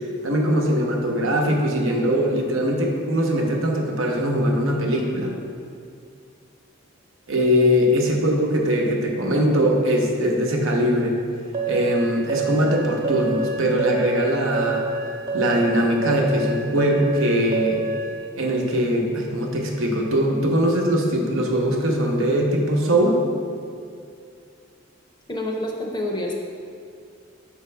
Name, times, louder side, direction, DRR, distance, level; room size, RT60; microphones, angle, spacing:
voice 1, 0.2-5.3 7.3-11.2 11.7-14.9 15.3-17.8 18.3-23.2, equal, 75° right, 0 dB, 0.9 m, -21 dB
sound 1, 11.5-18.1, right 4 dB, 40° right, 1.1 m, -27 dB
voice 2, 25.3-26.3, left 1 dB, 20° left, 0 dB, 0.6 m, -27 dB
7.0 x 5.1 x 3.3 m, 2.4 s
head